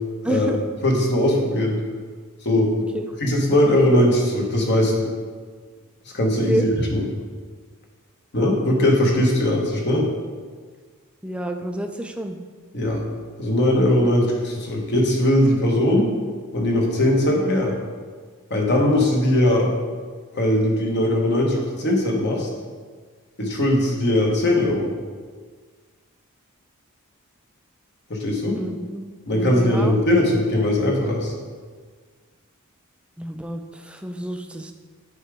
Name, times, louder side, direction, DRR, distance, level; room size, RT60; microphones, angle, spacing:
voice 1, 0.2-0.6 2.9-3.0 6.5-6.7 11.2-12.4 28.6-29.0 29.3-29.9 33.2-34.7, right 1 dB, 5° right, 5 dB, 0.4 m, -28 dB
voice 2, 0.8-1.8 2.4-2.7 3.2-5.1 6.0-7.0 8.3-10.1 12.7-13.0 13.4-16.1 16.5-17.8 18.5-19.7 20.3-22.5 23.4-24.9 28.1-28.6 29.3-31.3, left 1 dB, 50° left, -1 dB, 1.2 m, -20 dB
8.2 x 4.9 x 3.5 m, 1.5 s
head